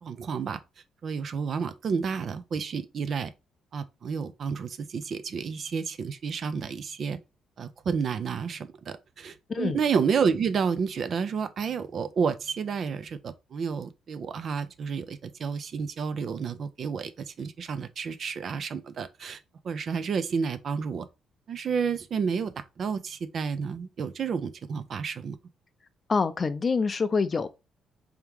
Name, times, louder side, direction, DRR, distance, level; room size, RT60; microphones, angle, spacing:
voice 1, 0.0-0.6 1.0-3.3 3.7-7.2 7.6-19.4 19.6-21.1 21.5-25.4, right 6 dB, 55° right, 0.5 m, -30 dB
voice 2, 26.1-27.5, left 4 dB, 35° left, 0.4 m, -26 dB
3.5 x 3.0 x 3.5 m
cardioid pair, 90°, 0 cm